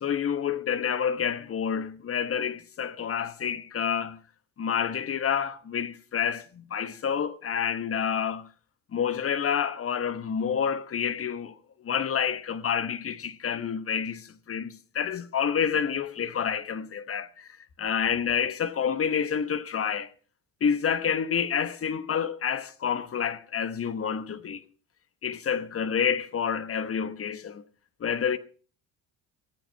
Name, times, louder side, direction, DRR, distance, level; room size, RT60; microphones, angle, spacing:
voice 1, 0.0-4.2 4.6-8.5 8.9-11.6 11.8-17.5 17.8-20.1 20.6-24.6 25.2-27.6 28.0-28.4, left 7 dB, 35° left, 1.1 m, -28 dB
17.5 x 8.9 x 5.6 m
supercardioid pair, 80°, 40 cm